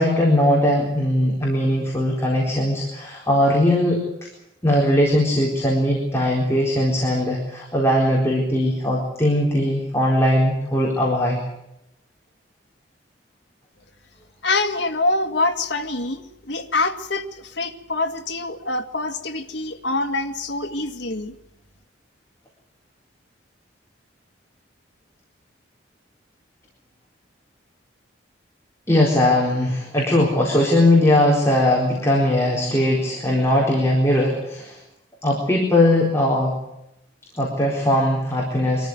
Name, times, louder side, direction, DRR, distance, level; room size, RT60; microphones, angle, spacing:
voice 1, 0.0-4.0 4.6-11.4 28.9-34.8 35.2-36.5 37.4-38.9, left 1 dB, 15° left, -3 dB, 4.2 m, -19 dB
voice 2, 14.4-21.3, left 2 dB, 65° left, 4 dB, 2.0 m, -25 dB
24.0 x 14.0 x 9.6 m, 0.85 s
head